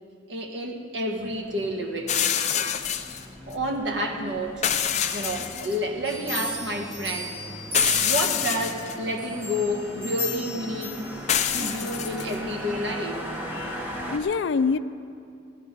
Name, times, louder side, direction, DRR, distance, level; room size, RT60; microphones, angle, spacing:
voice 1, 0.3-2.2 3.5-4.6 5.1-7.4 8.0-11.0 11.5-13.2, equal, 75° right, 3 dB, 1.5 m, -29 dB
sound 1, 1.2-14.2, equal, 10° right, 1.3 m, -39 dB
sound 2, 2.1-3.2 4.6-5.8 6.1-6.2 7.7-9.0 11.3-12.3, left 9 dB, 40° left, 0.6 m, -26 dB
sound 3, 6.0-8.6 9.2-11.5 12.0-12.1, left 1 dB, 50° right, 3.3 m, -34 dB
voice 2, 13.5-14.8, left 5 dB, 80° left, 14 dB, 0.4 m, -26 dB
15.5 x 11.0 x 5.2 m, 2.4 s
head